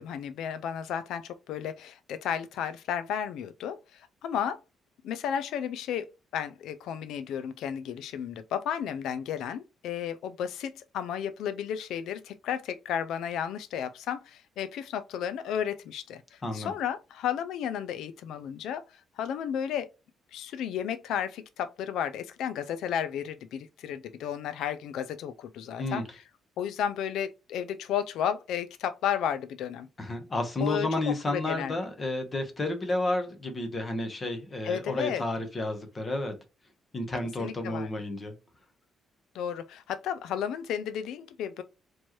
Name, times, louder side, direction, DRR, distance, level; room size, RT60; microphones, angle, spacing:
voice 1, 0.0-4.6 5.0-6.1 6.3-19.9 20.3-26.0 26.6-29.9 30.6-31.7 34.6-35.2 37.4-37.9 39.3-41.6, left 9 dB, 85° left, 0.3 m, -33 dB
voice 2, 30.0-36.3 36.9-38.3, left 2 dB, 25° left, 0.9 m, -31 dB
4.4 x 3.0 x 2.9 m
cardioid pair, 155°, 0 cm